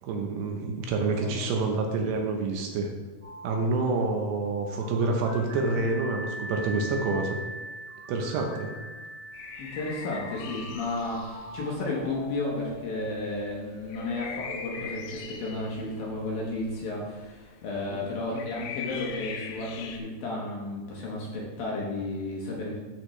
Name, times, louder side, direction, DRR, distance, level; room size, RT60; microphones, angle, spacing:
voice 1, 0.0-2.9 3.4-7.4 8.1-8.7 17.9-18.0, right 3 dB, 75° right, 2 dB, 2.7 m, -28 dB
sound 1, 3.2-17.1, right 1 dB, 40° right, 2.8 m, -42 dB
sound 2, 9.3-20.0, left 6 dB, 85° left, 2.8 m, -42 dB
voice 2, 9.6-22.8, left 2 dB, 65° left, -3 dB, 2.5 m, -33 dB
13.0 x 5.1 x 3.2 m, 1.3 s
omnidirectional pair, 5.2 m